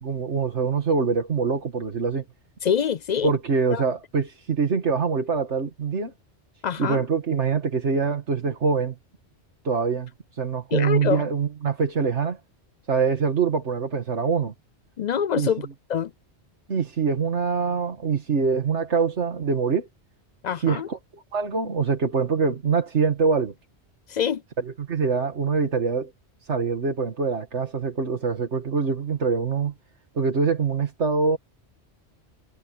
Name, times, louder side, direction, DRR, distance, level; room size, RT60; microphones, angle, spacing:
voice 1, 0.0-2.2 3.2-6.1 6.8-8.9 9.6-10.1 10.4-12.4 12.9-14.5 15.4-15.5 16.7-19.9 20.6-23.5 24.6-26.1 26.5-29.7 30.2-31.4, right 5 dB, 85° right, 2.1 m, -24 dB
voice 2, 2.6-3.3 3.7-3.8 6.6-7.0 10.7-11.3 15.0-16.1 20.4-20.9 24.1-24.4, left 8 dB, 55° left, 0.5 m, -25 dB
omnidirectional pair, 1.1 m